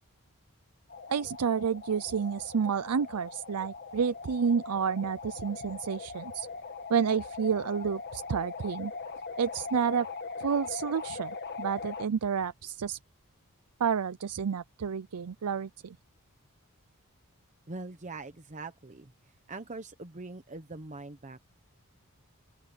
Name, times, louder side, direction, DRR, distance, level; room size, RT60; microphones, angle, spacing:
sound 1, 0.9-12.1, left 4 dB, 50° left, 1.8 m, -41 dB
voice 1, 1.1-6.5 6.9-8.9 9.4-10.1 10.4-13.0 13.8-16.0, right 6 dB, 90° right, 0.5 m, -30 dB
voice 2, 17.7-19.1 19.5-21.4, right 3 dB, 35° right, 1.0 m, -42 dB
open air
head